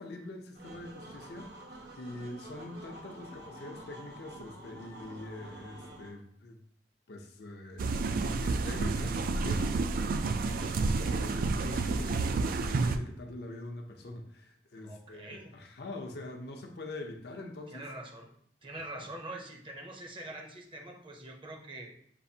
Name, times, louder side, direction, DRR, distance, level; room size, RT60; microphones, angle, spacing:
voice 1, 0.0-1.5 1.9-6.6 7.1-7.8 8.3-9.8 10.5-17.8 18.7-19.1, left 2 dB, 65° left, 3 dB, 0.6 m, -44 dB
sound 1, 0.5-6.1, right 1 dB, 70° right, 0.9 m, -48 dB
sound 2, 7.8-13.0, right 3 dB, 50° right, 0.3 m, -30 dB
voice 2, 10.2-10.6 14.8-15.5 17.7-18.3 18.6-21.9, right 1 dB, 30° right, 1 dB, 0.7 m, -44 dB
6.8 x 2.5 x 2.7 m, 0.65 s
head